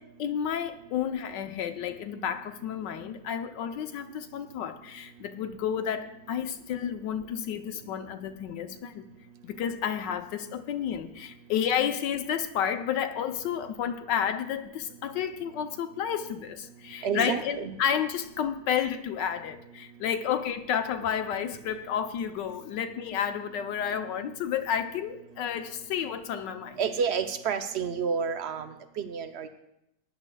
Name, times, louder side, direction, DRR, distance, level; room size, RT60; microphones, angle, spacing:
voice 1, 0.2-9.0 9.4-26.8, left 8 dB, 75° left, 8 dB, 1.4 m, -31 dB
voice 2, 17.0-17.7 26.8-29.5, right 6 dB, 75° right, 8 dB, 0.6 m, -30 dB
20.0 x 10.5 x 2.3 m, 0.84 s
omnidirectional pair, 2.0 m